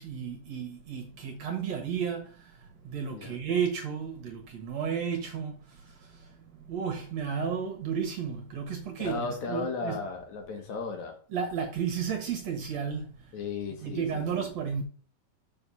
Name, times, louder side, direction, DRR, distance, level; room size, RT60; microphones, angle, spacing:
voice 1, 0.0-10.0 11.3-13.3 13.8-14.8, right 7 dB, 55° right, 2.3 m, -33 dB
voice 2, 9.0-11.2 13.3-14.5, left 4 dB, 60° left, 2.4 m, -35 dB
6.8 x 5.4 x 6.9 m
omnidirectional pair, 4.3 m